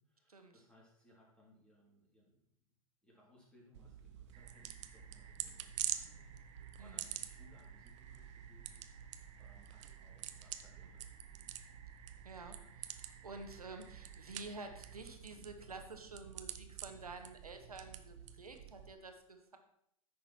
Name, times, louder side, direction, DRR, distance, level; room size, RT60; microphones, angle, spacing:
voice 1, 0.0-2.5 3.0-11.5, left 1 dB, 5° left, -4 dB, 3.6 m, -67 dB
sound 1, 3.7-18.9, right 11 dB, 55° right, 0.7 m, -47 dB
sound 2, 4.3-15.0, right 7 dB, 30° right, 1.0 m, -62 dB
voice 2, 12.2-19.6, right 3 dB, 85° right, 5 dB, 1.4 m, -50 dB
9.9 x 6.5 x 4.5 m, 0.73 s
figure-of-eight pair, 105°, 19 cm